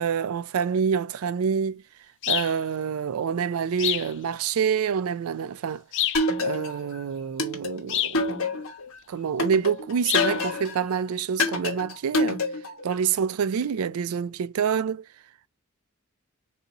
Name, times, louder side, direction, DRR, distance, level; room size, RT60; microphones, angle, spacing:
voice 1, 0.0-1.8 2.3-5.8 6.4-8.6 9.1-12.4 12.8-15.1, right 7 dB, 90° right, 0.4 m, -27 dB
sound 1, 2.2-2.6 3.8-4.1 5.9-6.3 7.9-8.2 10.0-10.4, left 13 dB, 60° left, 0.4 m, -27 dB
sound 2, 6.1-6.9 7.4-8.8 9.4-10.8 11.4-12.8, left 2 dB, 80° left, 1.2 m, -26 dB
4.1 x 2.7 x 3.8 m
head